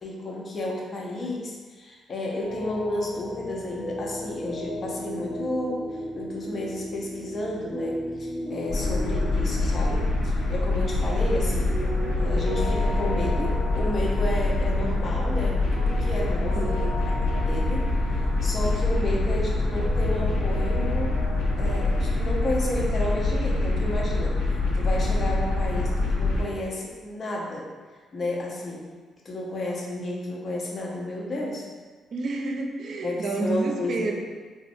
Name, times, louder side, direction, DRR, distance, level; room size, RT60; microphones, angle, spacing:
voice 1, 0.0-11.8 12.2-16.7 17.0-17.1 17.5-17.9 18.4-21.2 21.6-27.7 28.1-28.8 29.2-31.6 33.0-34.1, left 1 dB, 45° left, -2 dB, 0.7 m, -32 dB
sound 1, 2.4-22.3, left 1 dB, 15° left, 1.3 m, -37 dB
sound 2, 8.7-26.4, left 2 dB, 85° left, 0.8 m, -25 dB
voice 2, 16.5-17.1 32.1-34.1, right 3 dB, 65° right, 2 dB, 0.5 m, -29 dB
sound 3, 19.8-25.1, right 2 dB, 5° right, 1.0 m, -41 dB
4.1 x 2.5 x 2.6 m, 1.4 s
supercardioid pair, 70°, 0 cm